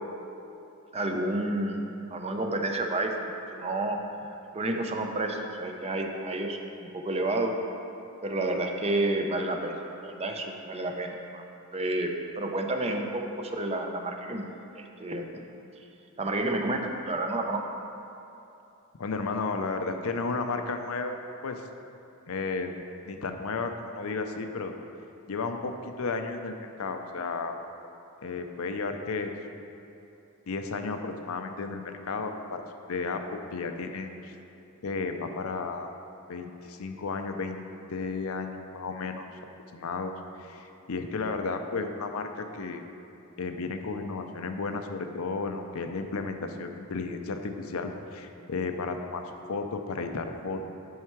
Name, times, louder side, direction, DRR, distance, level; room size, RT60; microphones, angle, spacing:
voice 1, 0.9-1.8 2.1-3.2 3.5-4.0 4.3-7.5 8.2-11.4 11.7-14.5 14.7-15.4 16.2-17.6, right 2 dB, 30° right, 3 dB, 0.6 m, -30 dB
voice 2, 19.0-21.2 21.4-21.6 22.3-22.7 23.1-24.7 25.3-27.6 28.2-29.3 30.5-32.6 32.9-34.3 34.8-35.9 36.3-37.6 37.9-39.3 39.7-40.1 40.4-42.8 43.4-50.7, left 4 dB, 70° left, 6 dB, 0.6 m, -33 dB
9.3 x 5.5 x 4.6 m, 2.8 s
head